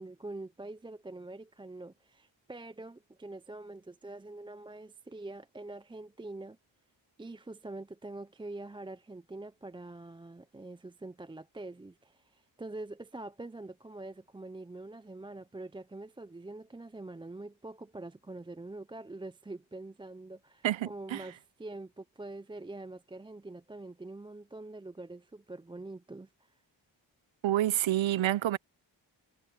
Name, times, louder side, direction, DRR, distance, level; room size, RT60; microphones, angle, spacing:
voice 1, 0.0-6.6 7.2-26.5, right 2 dB, 10° right, 0.4 m, -45 dB
voice 2, 20.6-21.2 27.4-28.6, right 13 dB, 80° right, 0.6 m, -28 dB
wide cardioid pair, 80°, 45 cm